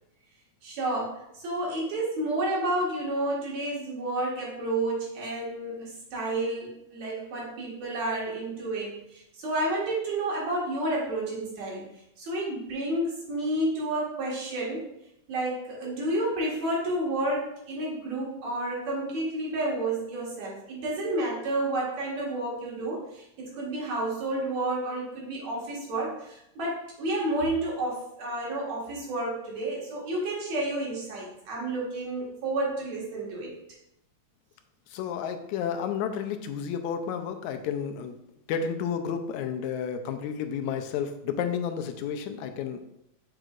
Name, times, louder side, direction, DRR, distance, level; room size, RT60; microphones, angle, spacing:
voice 1, 0.6-11.9 12.2-14.8 15.3-33.5, right 1 dB, 70° right, -5 dB, 3.1 m, -30 dB
voice 2, 34.9-38.2 38.5-42.8, left 7 dB, 85° left, 7 dB, 2.0 m, -31 dB
6.6 x 6.3 x 2.5 m, 0.80 s
omnidirectional pair, 3.3 m